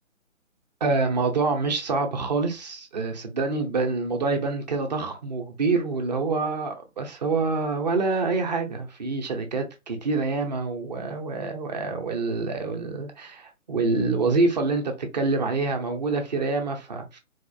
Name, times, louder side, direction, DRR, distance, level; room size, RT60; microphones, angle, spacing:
voice 1, 0.8-17.2, right 3 dB, 35° right, 0.8 m, -26 dB
4.3 x 2.5 x 2.6 m
hypercardioid pair, 160°, 40 cm